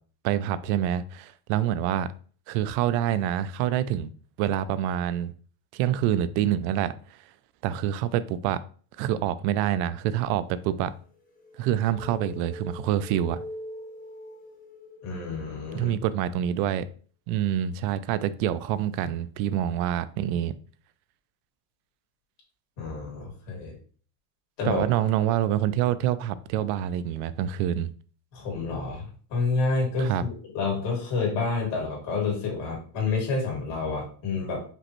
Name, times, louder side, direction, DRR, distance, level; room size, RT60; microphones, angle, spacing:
voice 1, 0.2-2.1 2.5-4.1 4.4-5.3 5.7-6.9 7.6-8.6 9.0-10.9 11.6-13.4 15.7-16.9 17.3-20.5 24.6-27.9 30.0-30.2, right 11 dB, 75° right, 15 dB, 0.5 m, -26 dB
sound 1, 10.9-15.7 18.9-19.1, left 2 dB, 20° left, 0.6 m, -43 dB
voice 2, 15.0-15.9 22.8-23.8 24.6-25.0 28.3-34.6, left 4 dB, 60° left, -2 dB, 2.3 m, -29 dB
5.2 x 3.1 x 3.0 m, 0.43 s
cardioid pair, 155°, 49 cm